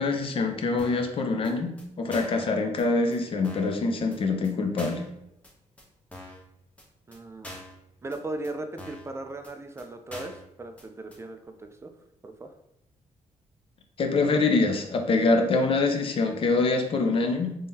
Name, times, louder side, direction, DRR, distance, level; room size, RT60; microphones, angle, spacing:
voice 1, 0.0-5.0 14.0-17.6, left 3 dB, 50° left, 4 dB, 0.6 m, -25 dB
sound 1, 0.8-1.1 1.4-1.5 1.8-1.9 2.1-2.4 2.8-2.9 3.1-3.2 3.4-3.8 4.1-4.2 4.4-4.5 4.8-5.1 5.4-5.5 5.8-5.9 6.1-6.4 6.8-6.9 7.1-7.2 7.4-7.8 8.1-8.2 8.4-8.5 8.8-9.1 9.4-9.5 9.8-9.9 10.1-10.4 10.8-10.9 11.1-11.2, left 1 dB, 10° left, 0.8 m, -43 dB
voice 2, 7.1-7.5 8.0-11.9 12.2-12.5, right 2 dB, 20° right, 6 dB, 0.3 m, -37 dB
3.6 x 3.4 x 2.7 m, 0.85 s
cardioid pair, 120°, 12 cm